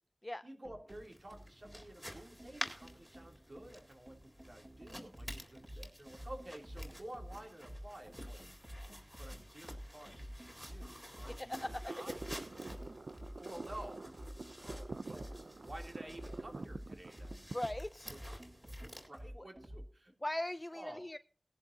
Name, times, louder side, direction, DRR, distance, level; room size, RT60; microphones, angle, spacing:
voice 1, 0.4-8.4 9.2-12.3 13.3-14.1 14.6-17.4 18.1-20.1 20.7-21.1, right 1 dB, 50° right, 2 dB, 3.0 m, -52 dB
sound 1, 0.6-19.9, equal, 35° right, 6.7 m, -50 dB
sound 2, 0.9-19.1, equal, 5° right, 3.7 m, -52 dB
voice 2, 11.4-11.9 17.5-18.1 19.4-19.5 20.2-21.2, left 1 dB, 25° left, 11 dB, 0.5 m, -39 dB
sound 3, 11.5-17.7, right 3 dB, 70° right, 0.5 m, -47 dB
19.5 x 11.0 x 2.7 m, 0.39 s
wide cardioid pair, 65°, 0 cm